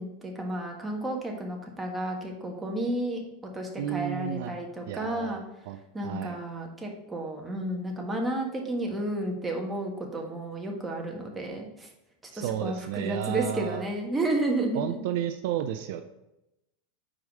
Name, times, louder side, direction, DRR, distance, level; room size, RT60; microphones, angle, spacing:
voice 1, 0.0-3.2 3.5-5.4 5.9-11.9 12.3-15.0, right 1 dB, 15° right, 0 dB, 1.5 m, -32 dB
voice 2, 3.8-4.6 4.8-6.4 12.3-13.9 14.7-16.0, right 11 dB, 60° right, 8 dB, 0.4 m, -32 dB
4.9 x 4.7 x 5.4 m, 0.91 s
hypercardioid pair, 95°, 0 cm